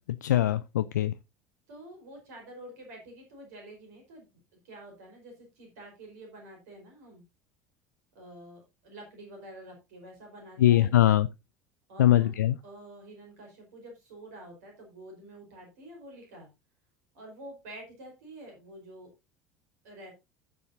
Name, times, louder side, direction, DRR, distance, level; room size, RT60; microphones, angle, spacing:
voice 1, 0.2-1.1 10.6-11.3 12.0-12.6, left 12 dB, 75° left, 0.4 m, -22 dB
voice 2, 1.7-4.3 4.6-7.2 8.1-10.9 11.9-12.3 12.6-16.5 17.1-19.1 19.8-20.1, right 1 dB, 70° right, 4.7 m, -48 dB
15.0 x 7.0 x 2.7 m
figure-of-eight pair, 65°, 9 cm